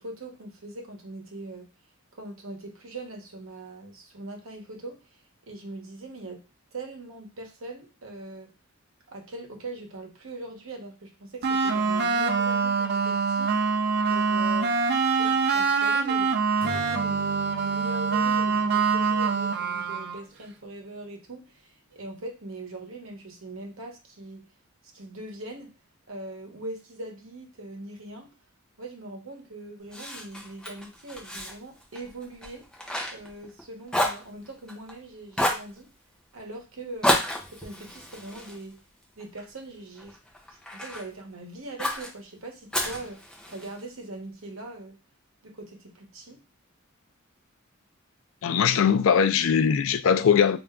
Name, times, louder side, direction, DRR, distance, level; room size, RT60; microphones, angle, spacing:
voice 1, 0.0-1.7 2.1-5.2 5.5-8.5 9.1-13.6 14.0-14.8 15.1-16.4 16.6-24.5 24.9-25.7 26.1-28.3 28.8-32.7 33.1-35.9 36.3-37.2 37.5-38.8 39.2-40.2 40.5-43.2 43.5-45.0 45.4-46.4, right 2 dB, 70° right, 1.0 m, -41 dB
sound 1, 11.4-20.2, right 5 dB, 50° right, 0.5 m, -24 dB
Acoustic guitar / Strum, 16.6-20.5, equal, 30° left, 1.3 m, -44 dB
Fire, 29.9-33.6 33.9-34.9 35.3-35.7 37.0-39.4 39.9-41.1 41.8-42.1 42.7-43.8, left 1 dB, 5° left, 0.8 m, -30 dB
voice 2, 48.4-50.6, left 7 dB, 65° left, 0.4 m, -21 dB
3.3 x 2.6 x 3.5 m
head